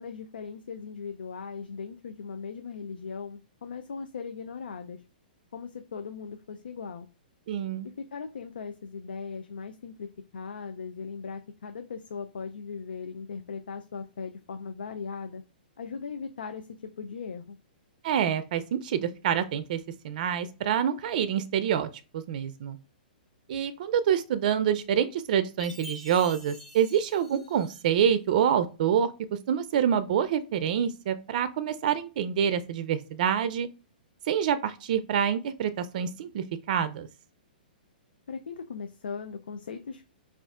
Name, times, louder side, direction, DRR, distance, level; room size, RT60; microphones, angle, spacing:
voice 1, 0.0-5.0 5.5-7.1 7.8-15.4 15.8-16.7 17.0-17.6 38.3-40.1, left 5 dB, 85° left, 6 dB, 0.4 m, -38 dB
voice 2, 7.5-7.9 18.0-19.8 20.0-22.8 23.5-29.1 29.5-33.7 34.3-37.1, right 8 dB, 55° right, 12 dB, 0.4 m, -27 dB
Chime, 25.6-28.1, equal, ahead, 1.2 m, -46 dB
5.0 x 2.4 x 2.4 m, 0.33 s
hypercardioid pair, 130°, 5 cm